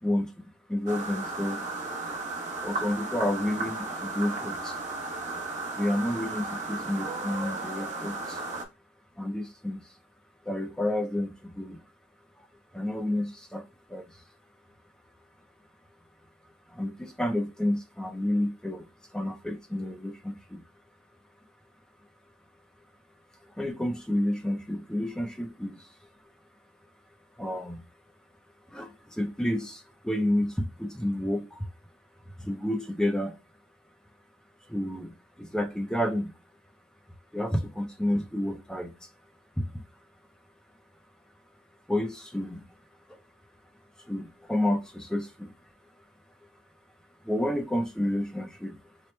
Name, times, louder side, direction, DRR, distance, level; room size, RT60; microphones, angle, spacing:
voice 1, 0.7-1.6 2.6-4.8 5.8-8.4 9.2-9.8 10.5-11.8 12.7-13.6 13.9-14.0 16.7-18.8 19.1-20.6 23.6-25.8 27.4-27.8 28.7-31.7 32.4-33.4 34.7-35.1 35.4-36.3 37.3-38.9 39.6-39.7 41.9-42.6 44.0-45.5 47.2-48.8, left 1 dB, 5° left, 0.4 m, -30 dB
sound 1, 0.9-8.6, right 3 dB, 40° right, 0.9 m, -35 dB
4.4 x 2.1 x 3.1 m
head